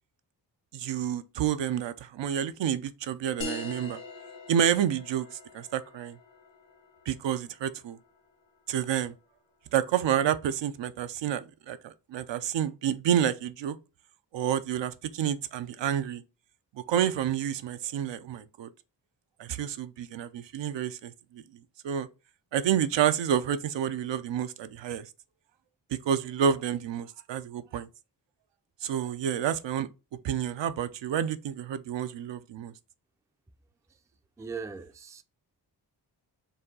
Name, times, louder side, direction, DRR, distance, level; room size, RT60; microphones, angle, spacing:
voice 1, 0.7-4.0 4.5-5.3 5.5-6.2 7.1-8.0 8.7-9.1 9.7-13.8 14.3-16.2 16.7-18.7 19.4-21.4 21.8-22.1 22.5-25.0 25.9-27.9 28.8-29.9 30.2-32.7, right 9 dB, 75° right, 0.5 m, -29 dB
sound 1, 3.4-8.5, left 3 dB, 75° left, 1.3 m, -43 dB
voice 2, 34.4-35.2, right 5 dB, 10° right, 0.3 m, -39 dB
4.1 x 2.3 x 3.8 m
cardioid pair, 45°, 45 cm